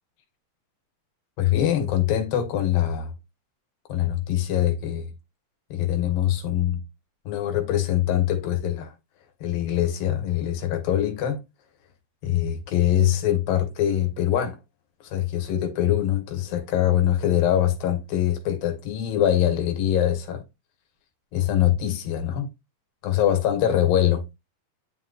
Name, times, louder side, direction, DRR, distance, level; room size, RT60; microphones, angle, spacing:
voice 1, 1.4-3.1 3.9-5.1 5.7-6.8 7.3-8.9 9.4-11.4 12.2-14.6 15.0-20.4 21.3-22.5 23.0-24.2, left 11 dB, 80° left, 3.0 m, -23 dB
10.5 x 3.9 x 2.4 m
omnidirectional pair, 4.1 m